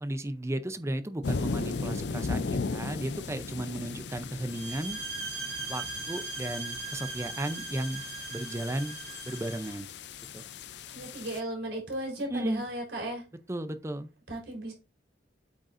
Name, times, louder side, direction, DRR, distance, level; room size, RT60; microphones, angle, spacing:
voice 1, 0.0-5.0 5.7-8.0 8.3-9.0 9.2-9.9 10.3-10.4 12.3-12.6 13.5-14.1, right 1 dB, 15° right, 0.6 m, -34 dB
sound 1, 1.2-11.4, left 4 dB, 70° left, 0.5 m, -37 dB
sound 2, 4.5-9.7, right 5 dB, 60° right, 2.5 m, -39 dB
voice 2, 10.9-13.2 14.3-14.7, right 1 dB, 85° right, 4.3 m, -35 dB
8.3 x 6.4 x 2.6 m
head